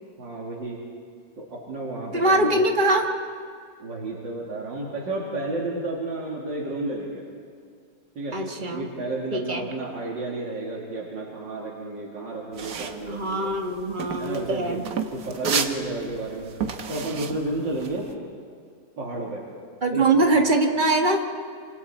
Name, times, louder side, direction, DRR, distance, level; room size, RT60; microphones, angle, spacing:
voice 1, 0.2-0.8 1.4-2.7 3.8-7.2 8.1-8.4 8.7-13.5 14.2-14.8 15.1-16.5 16.9-18.1 19.0-19.4 19.9-20.1, right 2 dB, 90° right, -3 dB, 3.1 m, -31 dB
voice 2, 2.1-3.1 8.3-8.9 9.3-9.7 13.1-14.9 19.8-21.2, right 2 dB, 30° right, 3 dB, 1.6 m, -22 dB
sound 1, 12.5-18.1, right 6 dB, 60° right, 1.4 m, -31 dB
26.5 x 26.0 x 4.4 m, 2.1 s
omnidirectional pair, 1.9 m